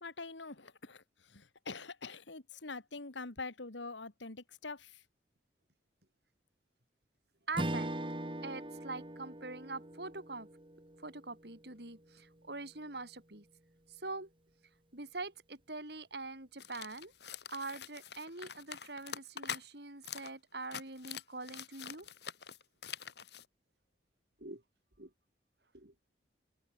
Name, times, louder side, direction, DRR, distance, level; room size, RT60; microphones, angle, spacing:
voice 1, 0.0-5.0, left 3 dB, 85° left, 2.1 m, -45 dB
Strum, 7.5-12.2, right 1 dB, 25° right, 1.9 m, -41 dB
voice 2, 7.5-7.9 8.4-10.5 11.0-13.5 13.9-14.3 14.9-17.1 17.5-22.1 24.4-24.6 25.0-25.1 25.7-25.9, right 3 dB, 60° right, 3.8 m, -44 dB
sound 1, 16.6-19.6 20.0-20.3 20.6-23.5, left 7 dB, 65° left, 5.2 m, -45 dB
open air
head